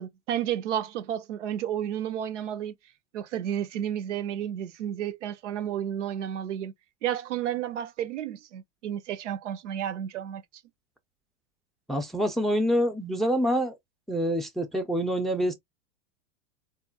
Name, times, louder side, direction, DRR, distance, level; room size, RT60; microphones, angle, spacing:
voice 1, 0.0-2.7 3.1-6.7 7.0-10.4, right 10 dB, 85° right, 0.6 m, -32 dB
voice 2, 11.9-13.8 14.1-15.5, equal, ahead, 0.4 m, -26 dB
3.7 x 2.4 x 2.4 m
hypercardioid pair, 105°, 35 cm